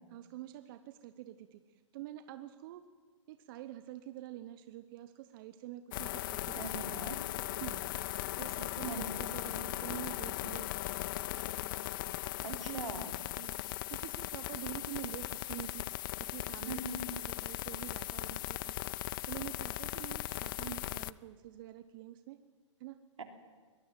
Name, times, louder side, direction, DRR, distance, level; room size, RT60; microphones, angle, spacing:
voice 1, 0.1-1.6 1.9-2.8 3.3-6.6 7.6-7.8 8.4-10.7 12.5-12.9 13.4-15.9 16.2-16.8 17.2-22.4 22.8-23.0, right 14 dB, 45° right, 11 dB, 1.0 m, -46 dB
sound 1, 5.9-21.1, left 16 dB, 40° left, 0.6 m, -38 dB
voice 2, 6.5-7.2 8.8-9.2 12.4-13.1 16.7-17.0 23.2-23.3, right 4 dB, 80° right, 5 dB, 3.1 m, -41 dB
22.5 x 19.0 x 7.5 m, 1.5 s
hypercardioid pair, 125°, 16 cm